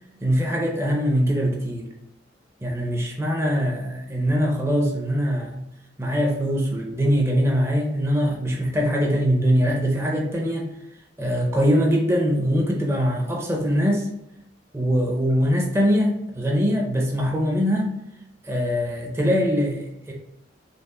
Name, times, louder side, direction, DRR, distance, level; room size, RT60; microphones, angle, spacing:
voice 1, 0.2-1.9 2.6-5.7 6.0-10.7 11.2-14.1 14.7-18.0 18.4-20.1, equal, 15° right, 0 dB, 0.5 m, -22 dB
5.2 x 2.4 x 3.7 m, 0.84 s
head